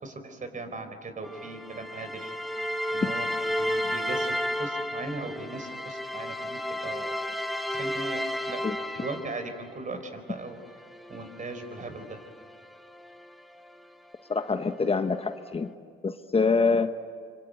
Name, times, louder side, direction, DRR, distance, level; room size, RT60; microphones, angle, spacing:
voice 1, 0.0-2.3 2.9-4.3 4.6-7.2 7.7-8.6 8.9-10.6 11.1-12.2, right 2 dB, 40° right, 8 dB, 4.6 m, -38 dB
sound 1, 1.2-9.7 10.5-13.8, equal, ahead, 1.5 m, -33 dB
voice 2, 14.3-15.7 16.0-17.0, left 4 dB, 30° left, 8 dB, 1.1 m, -25 dB
25.5 x 25.5 x 9.2 m, 2.1 s
cardioid pair, 90°, 20 cm